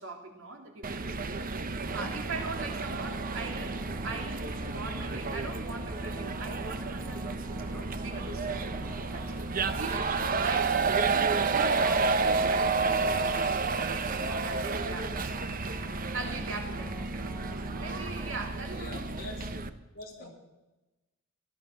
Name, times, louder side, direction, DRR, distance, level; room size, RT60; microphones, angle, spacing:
voice 1, 0.0-1.4 1.9-3.7 4.0-7.4 7.7-10.1 10.4-15.1 16.1-19.0 20.2-20.3, right 3 dB, 70° right, 2 dB, 3.2 m, -41 dB
sound 1, 0.8-19.7, right 4 dB, 45° right, 0.9 m, -31 dB
sound 2, 1.8-18.3, right 1 dB, 25° right, 5.2 m, -44 dB
voice 2, 18.7-19.5 19.9-20.3, left 2 dB, 50° left, -1 dB, 5.2 m, -43 dB
17.5 x 12.0 x 6.7 m, 1.1 s
head